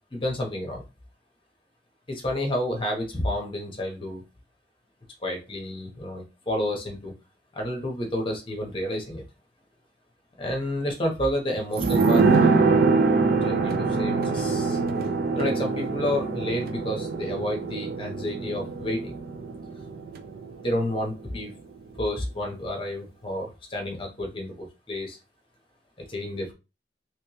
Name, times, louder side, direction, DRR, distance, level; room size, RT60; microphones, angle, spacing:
voice 1, 0.1-0.8 2.1-4.2 5.2-7.1 7.5-9.2 10.4-12.3 13.4-14.8 15.3-19.2 20.6-21.5 22.0-25.2 26.1-26.5, left 1 dB, 30° left, 1 dB, 1.0 m, -30 dB
sound 1, 11.8-21.1 21.3-21.4, right 4 dB, 55° right, 0.5 m, -24 dB
3.2 x 3.1 x 3.0 m, 0.28 s
head